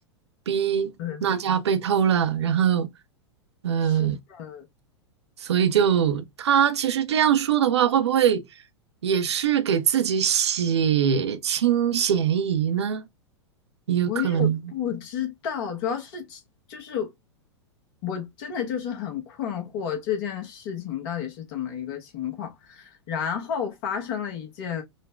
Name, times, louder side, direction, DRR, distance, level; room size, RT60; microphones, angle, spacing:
voice 1, 0.5-0.9 1.2-2.9 3.6-4.2 5.4-8.4 9.0-13.0 13.9-14.7, right 8 dB, 65° right, 0.6 m, -22 dB
voice 2, 3.8-4.7 14.0-16.4 16.7-17.1 18.0-24.8, left 8 dB, 45° left, 1.2 m, -31 dB
3.9 x 2.2 x 3.2 m
figure-of-eight pair, 95°, 15 cm